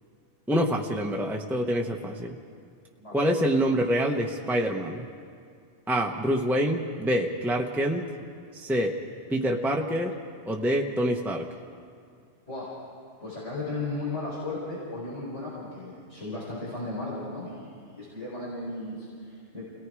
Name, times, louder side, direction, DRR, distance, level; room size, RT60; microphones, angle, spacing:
voice 1, 0.5-2.4 3.1-5.1 5.9-8.0 8.5-8.9 9.3-10.1 10.5-11.5, equal, ahead, 0 dB, 1.0 m, -26 dB
voice 2, 13.2-19.6, left 2 dB, 80° left, -7 dB, 5.6 m, -35 dB
29.5 x 18.5 x 4.8 m, 2.3 s
omnidirectional pair, 1.2 m